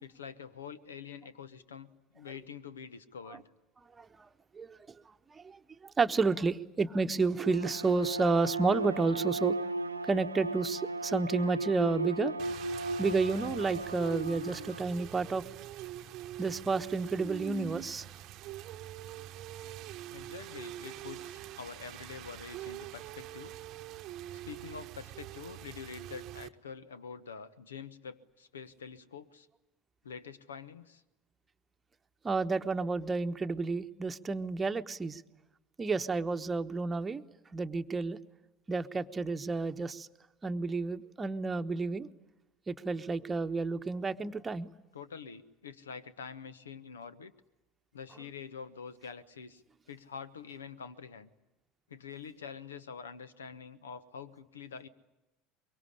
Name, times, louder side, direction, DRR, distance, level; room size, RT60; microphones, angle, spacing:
voice 1, 0.0-3.4 20.1-23.5 24.4-29.5 30.0-31.0 44.9-47.3 47.9-49.6 49.9-51.3 51.9-54.9, left 6 dB, 75° left, 16 dB, 1.2 m, -46 dB
voice 2, 4.0-4.3 4.5-5.0 5.3-9.6 10.1-12.3 13.0-15.4 16.4-18.1 32.2-35.2 35.8-37.2 37.5-38.2 38.7-40.1 40.4-42.1 42.7-44.7, right 4 dB, 20° right, 8 dB, 1.1 m, -31 dB
Bowed string instrument, 7.3-14.9, right 2 dB, 85° right, 0.9 m, -36 dB
Rain, 12.4-26.5, right 13 dB, 45° right, 0.9 m, -44 dB
24.0 x 23.5 x 9.9 m, 1.0 s
figure-of-eight pair, 70°, 0 cm